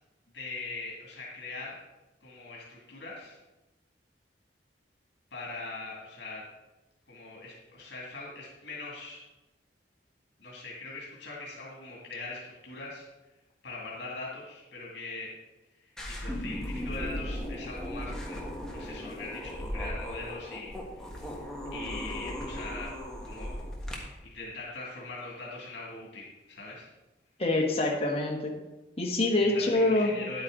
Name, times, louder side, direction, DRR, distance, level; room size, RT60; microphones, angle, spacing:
voice 1, 0.3-1.8 2.2-3.4 5.3-6.4 7.1-9.2 10.4-13.1 13.6-15.3 15.8-18.4 18.7-21.4 21.7-23.0 23.2-23.5 23.9-26.9 29.4-30.4, left 3 dB, 75° left, -3 dB, 2.2 m, -41 dB
sound 1, 16.0-24.0, equal, 5° left, 1.5 m, -37 dB
voice 2, 27.4-28.5 29.0-30.1, left 2 dB, 35° left, -1 dB, 1.6 m, -25 dB
9.8 x 8.7 x 3.8 m, 1.1 s
head